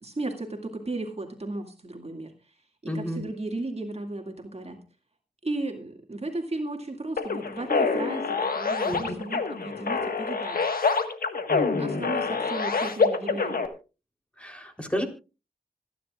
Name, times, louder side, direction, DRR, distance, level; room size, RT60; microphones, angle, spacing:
voice 1, 0.0-2.3 2.8-4.8 5.4-10.6 11.8-13.6, right 2 dB, 45° right, 3 dB, 2.2 m, -35 dB
voice 2, 2.9-3.2 8.8-9.1 11.5-12.1 12.4-12.5 14.4-15.1, equal, 10° left, 4 dB, 3.4 m, -32 dB
sound 1, 7.2-13.7, left 4 dB, 90° left, 1.5 m, -26 dB
26.0 x 10.5 x 2.4 m, 0.32 s
cardioid pair, 50°, 15 cm